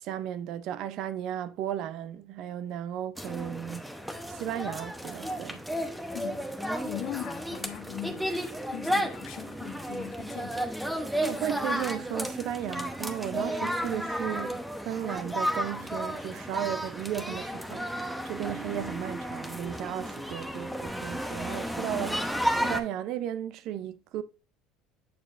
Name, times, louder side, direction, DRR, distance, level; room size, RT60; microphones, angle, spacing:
voice 1, 0.0-3.8 4.3-5.6 11.2-24.2, right 11 dB, 65° right, 0.5 m, -35 dB
sound 1, 3.2-22.8, equal, ahead, 0.9 m, -33 dB
voice 2, 6.1-6.5 6.8-10.7, left 12 dB, 65° left, 0.8 m, -40 dB
7.0 x 6.2 x 2.5 m
supercardioid pair, 95°, 0 cm